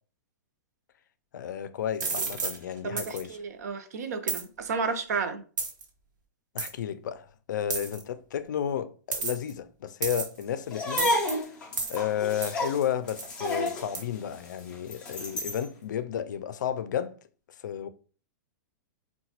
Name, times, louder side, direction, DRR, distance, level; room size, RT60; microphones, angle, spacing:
voice 1, 1.3-3.3 6.5-11.5 11.9-17.2 17.6-17.9, left 9 dB, 80° left, 0.4 m, -32 dB
sound 1, 2.0-2.6 3.0-3.2 4.3-4.4 5.6-5.8 6.6-6.7 7.7-8.0 9.1-9.5 10.0-10.4 11.0-11.3 11.8-12.0 12.4-12.6 13.2-13.3 13.9-14.0, right 4 dB, 80° right, 0.9 m, -31 dB
voice 2, 2.8-5.4, right 5 dB, 60° right, 0.5 m, -32 dB
sound 2, 10.7-15.7, left 1 dB, 10° left, 0.4 m, -31 dB
3.8 x 2.2 x 2.8 m
supercardioid pair, 180°, 10 cm